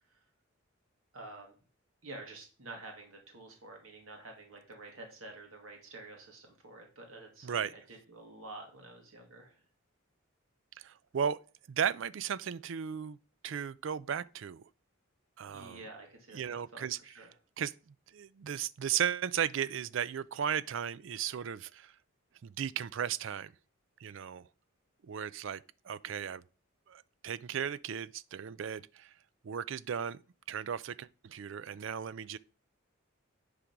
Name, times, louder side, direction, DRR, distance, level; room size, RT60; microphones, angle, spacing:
voice 1, 1.1-1.6 2.0-9.6 15.4-17.3, right 2 dB, 80° right, 2.1 m, -49 dB
voice 2, 10.8-11.4 11.7-13.2 13.4-14.7 15.4-15.8 16.3-17.0 17.6-21.9 22.4-23.5 24.0-24.5 25.0-26.4 26.9-29.1 29.4-30.2 30.5-32.4, right 8 dB, 60° right, 0.4 m, -36 dB
10.0 x 3.8 x 5.9 m
head